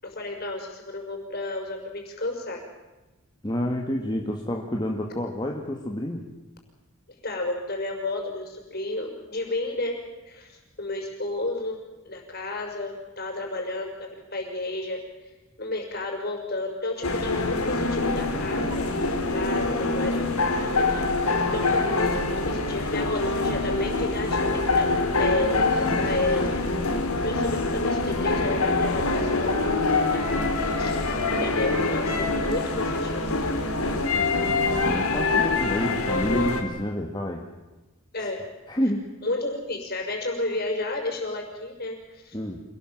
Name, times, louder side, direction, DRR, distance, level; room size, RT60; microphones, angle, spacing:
voice 1, 0.0-2.6 7.2-15.0 15.6-21.2 21.5-22.2 22.5-26.5 27.2-30.4 30.8-31.0 31.4-33.3 38.1-38.5 39.2-42.4, left 2 dB, 45° left, 3 dB, 5.7 m, -32 dB
voice 2, 3.4-6.3 33.9-37.5 38.2-38.3 38.7-39.1 42.3-42.6, equal, 20° left, 1 dB, 1.8 m, -29 dB
sound 1, 17.0-36.6, left 3 dB, 90° left, 3.4 m, -25 dB
27.0 x 19.0 x 7.6 m, 1.1 s
head